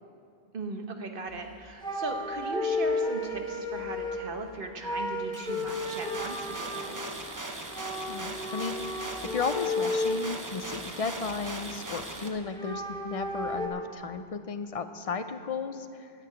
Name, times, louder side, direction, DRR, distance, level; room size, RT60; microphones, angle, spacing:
voice 1, 0.5-7.1, right 3 dB, 60° right, 5 dB, 1.2 m, -38 dB
sound 1, 1.3-1.5 1.8-4.3 4.8-6.9 7.7-10.2 10.7-11.7 12.4-13.7, left 2 dB, 5° left, 1.1 m, -33 dB
sound 2, 5.3-12.3, right 2 dB, 20° right, 0.8 m, -39 dB
voice 2, 8.1-16.1, left 5 dB, 45° left, 9 dB, 0.5 m, -34 dB
10.0 x 7.8 x 9.3 m, 2.5 s
omnidirectional pair, 1.1 m